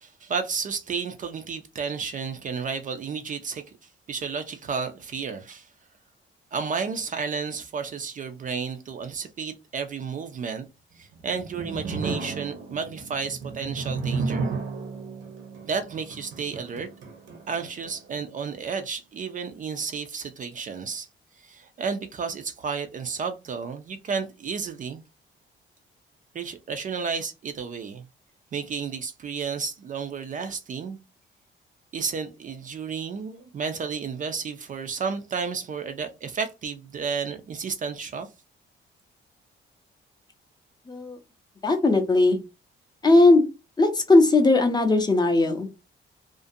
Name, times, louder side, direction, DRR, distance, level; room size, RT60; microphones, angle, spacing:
voice 1, 0.0-5.7 6.5-10.7 10.9-14.5 15.6-16.9 17.5-21.1 21.4-25.0 26.3-28.0 28.5-31.0 31.9-38.3, right 5 dB, 40° right, 0.4 m, -32 dB
sound 1, 11.0-18.2, right 4 dB, 60° right, 0.7 m, -33 dB
voice 2, 40.9-41.2 41.6-42.4 43.0-43.4 43.8-45.7, left 2 dB, 20° left, 0.5 m, -18 dB
2.4 x 2.1 x 2.5 m
cardioid pair, 135°, 21 cm